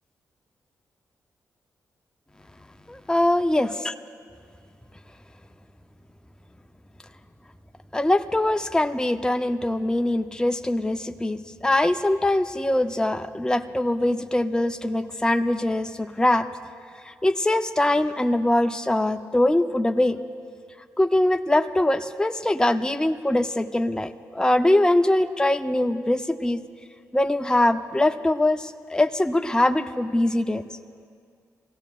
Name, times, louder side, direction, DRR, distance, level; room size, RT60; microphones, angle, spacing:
voice 1, 2.9-3.7 7.9-16.5 17.1-20.2 21.0-26.6 27.1-30.6, left 1 dB, 10° left, 6 dB, 0.7 m, -22 dB
24.5 x 17.0 x 2.5 m, 2.1 s
supercardioid pair, 45°, 7 cm